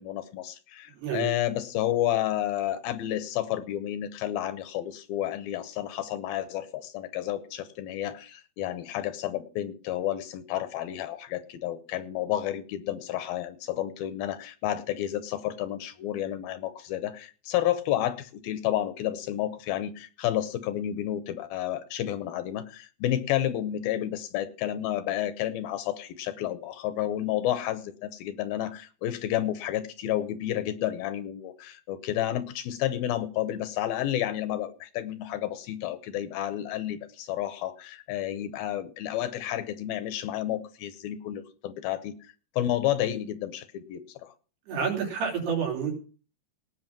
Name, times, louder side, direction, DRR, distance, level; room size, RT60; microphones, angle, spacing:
voice 1, 0.0-42.2 42.6-44.3, left 12 dB, 75° left, 12 dB, 2.5 m, -31 dB
voice 2, 1.0-1.3 44.7-46.0, right 6 dB, 80° right, 0 dB, 5.3 m, -29 dB
18.5 x 6.3 x 6.0 m, 0.38 s
omnidirectional pair, 4.6 m